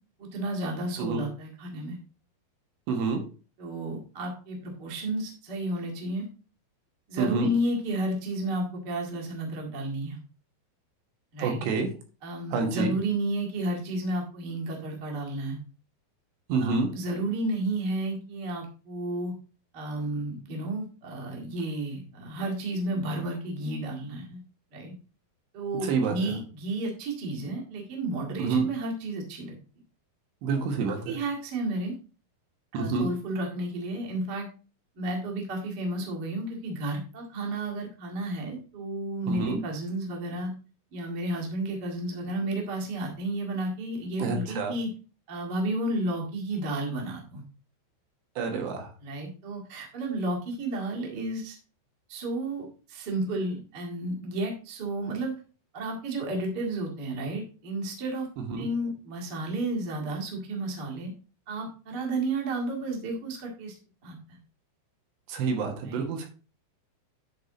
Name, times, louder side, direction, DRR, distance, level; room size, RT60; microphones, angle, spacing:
voice 1, 0.2-2.0 3.6-6.3 7.1-10.2 11.3-11.6 12.2-15.6 16.6-19.3 19.7-24.4 24.7-24.9 25.5-29.6 30.5-31.9 32.7-34.5 34.9-40.5 40.9-44.9 45.3-47.4 49.0-51.6 52.1-55.4 55.7-58.3 58.6-61.1 61.5-63.7 64.0-64.2 65.8-66.0, right 1 dB, 85° right, -1 dB, 0.9 m, -32 dB
voice 2, 2.9-3.2 7.2-7.5 11.4-11.9 12.5-12.9 16.5-16.9 25.8-26.4 28.4-28.7 30.4-31.2 32.7-33.1 39.3-39.6 44.2-44.7 48.4-48.9 58.4-58.7 65.3-66.3, right 4 dB, 70° right, 4 dB, 3.2 m, -28 dB
10.5 x 3.8 x 4.1 m, 0.36 s
omnidirectional pair, 5.5 m